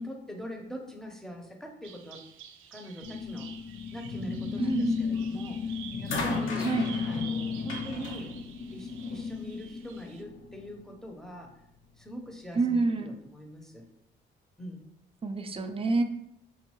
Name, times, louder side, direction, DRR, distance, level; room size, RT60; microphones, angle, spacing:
voice 1, 0.0-2.2 2.7-3.5 3.9-5.6 6.0-6.7 7.0-8.4 8.7-11.5 12.0-13.9 14.6-14.8, equal, ahead, 3 dB, 0.8 m, -42 dB
Bird vocalization bird call bird song, 1.8-10.2, right 8 dB, 90° right, 0.4 m, -48 dB
sound 1, 3.0-10.8, left 5 dB, 60° left, 0.5 m, -34 dB
voice 2, 4.6-5.0 6.6-6.9 12.5-13.1 15.2-16.0, right 3 dB, 30° right, 7 dB, 0.5 m, -27 dB
sound 2, 5.1-5.5 6.1-9.3 10.3-10.4, left 3 dB, 85° left, 0.9 m, -37 dB
5.5 x 2.6 x 2.9 m, 0.81 s
cardioid pair, 90°, 20 cm